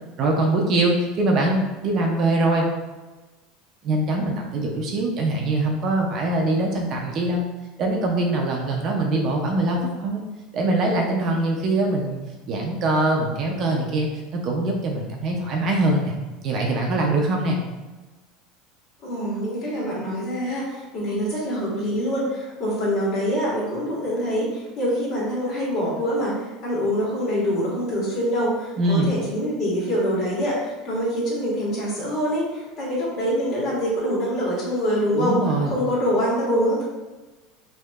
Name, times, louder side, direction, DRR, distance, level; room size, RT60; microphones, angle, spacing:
voice 1, 0.2-2.7 3.8-7.5 7.8-10.2 10.5-12.2 12.5-16.1 16.4-17.6 28.8-29.1 35.1-35.7, right 2 dB, 35° right, 0 dB, 0.5 m, -23 dB
voice 2, 19.0-35.4 35.7-36.8, equal, 40° left, -6 dB, 1.5 m, -25 dB
4.4 x 2.7 x 2.3 m, 1.2 s
cardioid pair, 165°, 0 cm